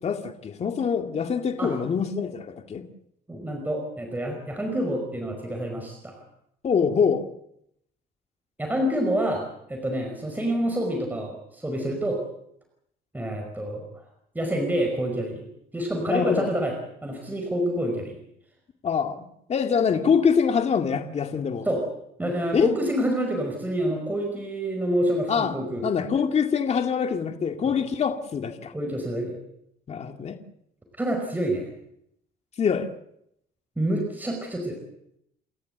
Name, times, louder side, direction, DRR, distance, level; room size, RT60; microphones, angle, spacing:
voice 1, 0.0-2.9 6.6-7.2 16.1-16.5 18.8-21.7 22.5-22.7 25.3-25.5 25.8-28.7 29.9-30.4 32.6-32.9, left 6 dB, 40° left, 6 dB, 2.3 m, -24 dB
voice 2, 3.3-6.1 8.6-9.4 9.7-12.2 13.1-13.9 14.4-15.5 15.7-16.7 17.0-18.2 21.6-21.8 22.2-25.9 27.6-27.7 28.7-29.4 31.0-31.7 33.8-34.8, right 1 dB, 10° right, 2 dB, 5.2 m, -27 dB
29.5 x 13.5 x 8.1 m, 0.76 s
cardioid pair, 110°, 17 cm